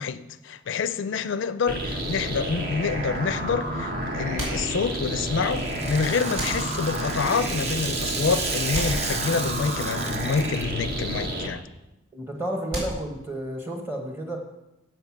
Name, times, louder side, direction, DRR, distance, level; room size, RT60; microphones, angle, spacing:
voice 1, 0.0-11.6, left 5 dB, 70° left, 0.4 m, -27 dB
sound 1, 1.7-11.5, right 1 dB, 50° right, 1.3 m, -30 dB
sound 2, 4.3-5.3 6.3-7.2 8.7-9.8 12.7-13.5, equal, 90° right, 4.2 m, -35 dB
Rattle (instrument), 4.7-11.0, right 4 dB, 30° right, 0.7 m, -33 dB
voice 2, 12.1-14.4, right 1 dB, 10° right, 1.2 m, -31 dB
7.9 x 7.9 x 5.9 m
head